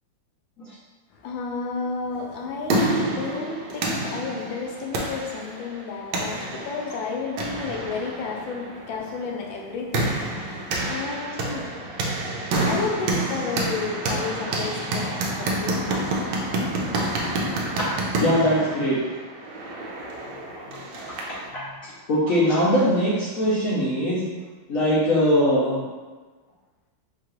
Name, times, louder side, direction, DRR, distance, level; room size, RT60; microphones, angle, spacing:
voice 1, 1.1-11.7 12.6-16.1 20.2-20.9 21.5-21.8, left 4 dB, 80° left, 0 dB, 1.4 m, -32 dB
sound 1, 2.3-21.5, right 2 dB, 85° right, 1.3 m, -28 dB
voice 2, 18.2-19.0 22.1-24.2 24.7-25.8, equal, 60° left, -8 dB, 0.9 m, -21 dB
4.6 x 2.5 x 3.0 m, 1.3 s
omnidirectional pair, 2.1 m